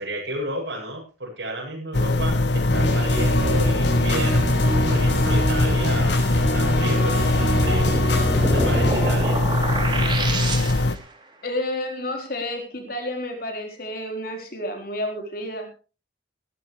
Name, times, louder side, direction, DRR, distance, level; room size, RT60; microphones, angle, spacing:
voice 1, 0.0-7.9 8.4-9.4, right 1 dB, 85° right, -2 dB, 7.8 m, -32 dB
sound 1, 1.9-11.0, left 2 dB, 75° left, 0.9 m, -22 dB
sound 2, 2.7-9.2, equal, 90° left, 6.5 m, -24 dB
sound 3, 7.6-11.1, right 2 dB, 25° right, 3.3 m, -29 dB
voice 2, 11.4-15.7, left 1 dB, 55° left, 4 dB, 4.2 m, -30 dB
20.0 x 13.0 x 3.3 m, 0.34 s
head